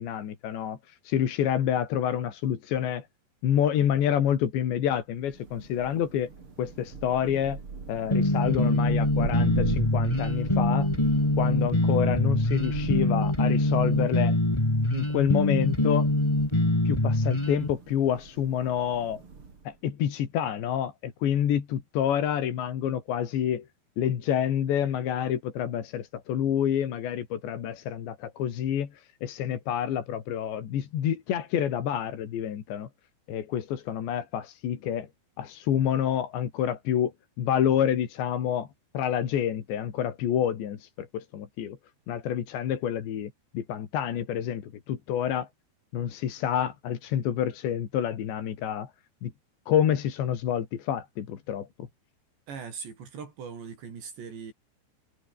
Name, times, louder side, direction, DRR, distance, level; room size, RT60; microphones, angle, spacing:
voice 1, 0.0-3.1 3.4-6.3 6.6-7.6 7.9-10.9 11.4-14.4 14.9-16.1 16.9-19.2 19.7-23.7 24.0-32.9 33.3-35.1 35.4-37.1 37.4-38.7 38.9-41.8 42.1-45.5 45.9-48.9 49.2-49.3 49.7-51.7, left 9 dB, 80° left, 4.9 m, -28 dB
Thunder, 5.2-19.8, right 5 dB, 30° right, 3.9 m, -40 dB
sound 1, 8.1-17.7, left 1 dB, 10° left, 1.9 m, -24 dB
voice 2, 52.5-54.5, right 6 dB, 75° right, 7.0 m, -40 dB
omnidirectional pair, 5.0 m